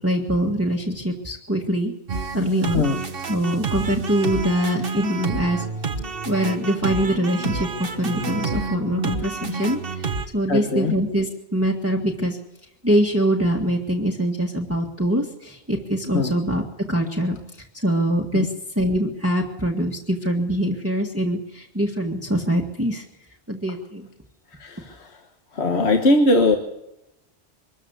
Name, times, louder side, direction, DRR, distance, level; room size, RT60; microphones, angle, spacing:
voice 1, 0.0-1.9 2.3-2.8 3.3-5.7 6.3-12.4 12.8-17.4 17.8-18.5 18.8-23.0 23.5-24.1, equal, 10° right, 0 dB, 1.7 m, -23 dB
sound 1, 2.1-10.3, right 4 dB, 55° right, 1.5 m, -29 dB
voice 2, 10.5-10.9 16.1-16.3 18.3-18.5 24.5-25.2 25.5-26.6, left 2 dB, 70° left, 4 dB, 1.6 m, -20 dB
24.0 x 13.5 x 8.1 m, 0.91 s
omnidirectional pair, 1.1 m